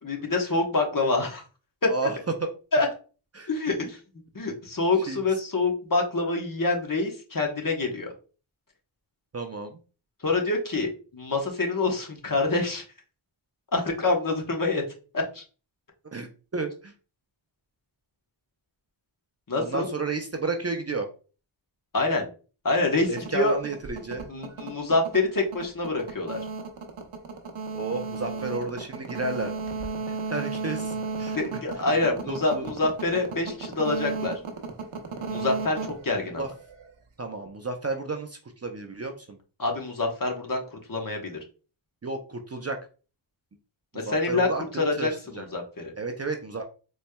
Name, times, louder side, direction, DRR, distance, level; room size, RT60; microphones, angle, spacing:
voice 1, 0.0-1.4 1.8-1.9 2.7-2.9 3.5-4.0 4.3-8.1 10.2-12.8 13.7-14.8 15.1-15.4 19.5-19.9 21.9-22.3 22.6-23.6 24.3-26.4 31.3-34.3 35.3-36.4 39.6-41.4 43.9-44.5 44.8-45.9, left 3 dB, 40° left, 1 dB, 1.1 m, -26 dB
voice 2, 9.3-9.8 16.1-16.9 19.6-21.1 23.1-24.3 27.7-29.5 30.3-31.4 32.3-32.7 36.4-36.5 37.2-39.4 42.0-42.8 43.9-45.5 46.0-46.6, right 3 dB, 30° right, 5 dB, 0.5 m, -32 dB
sound 1, 23.0-36.9, right 4 dB, 85° right, 0.8 m, -34 dB
4.2 x 3.2 x 2.2 m, 0.36 s
wide cardioid pair, 60°, 49 cm